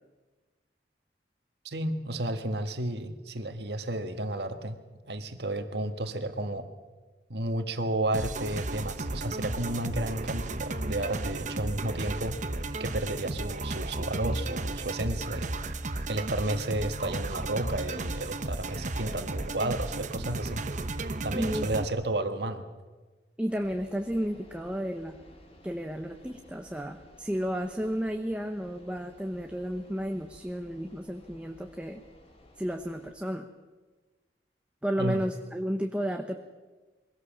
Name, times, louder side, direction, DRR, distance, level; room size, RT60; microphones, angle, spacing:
voice 1, 1.6-4.8 5.1-6.7 7.3-12.4 12.8-15.5 16.1-20.6 21.2-22.6 35.0-35.2, right 1 dB, 65° right, 7 dB, 1.7 m, -32 dB
sound 1, 8.1-21.8, right 2 dB, 45° right, 1.0 m, -34 dB
voice 2, 21.3-21.7 23.4-25.1 25.6-32.0 32.6-33.5 34.8-36.4, equal, 5° right, 4 dB, 0.9 m, -32 dB
sound 2, 23.5-33.1, left 1 dB, 35° left, 2.5 m, -55 dB
23.0 x 17.0 x 7.5 m, 1.3 s
head